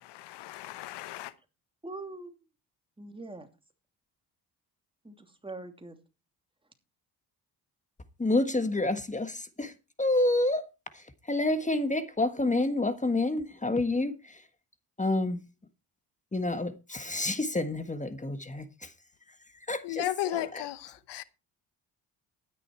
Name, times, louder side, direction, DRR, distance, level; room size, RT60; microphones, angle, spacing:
voice 1, 0.0-1.3 19.8-21.2, left 14 dB, 85° left, 0.9 m, -35 dB
voice 2, 1.8-2.4 3.0-3.5 5.0-6.0, right 2 dB, 15° right, 2.9 m, -42 dB
voice 3, 8.2-9.7 10.0-10.6 11.3-14.2 15.0-15.4 16.3-18.7 19.7-20.0 20.3-20.6, left 2 dB, 20° left, 1.5 m, -28 dB
12.0 x 10.0 x 4.5 m
cardioid pair, 75°, 40 cm